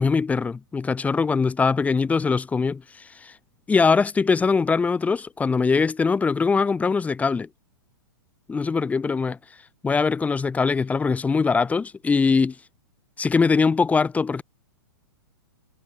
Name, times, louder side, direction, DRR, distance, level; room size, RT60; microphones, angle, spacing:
voice 1, 0.0-3.3 3.7-7.5 8.5-9.4 9.8-12.5 13.2-14.4, left 4 dB, 10° left, 5.1 m, -22 dB
figure-of-eight pair, 110°, 12 cm